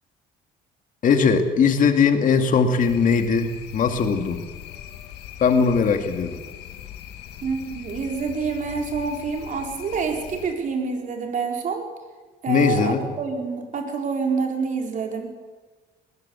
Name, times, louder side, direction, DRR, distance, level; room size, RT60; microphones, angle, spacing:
voice 1, 1.0-4.4 5.4-6.4 12.5-13.0, left 5 dB, 50° left, 6 dB, 2.4 m, -20 dB
sound 1, 2.8-10.5, left 10 dB, 85° left, 2.1 m, -40 dB
voice 2, 7.4-11.9 12.4-15.3, right 5 dB, 50° right, 2 dB, 4.3 m, -27 dB
20.5 x 18.0 x 7.1 m, 1.3 s
cardioid pair, 110°, 17 cm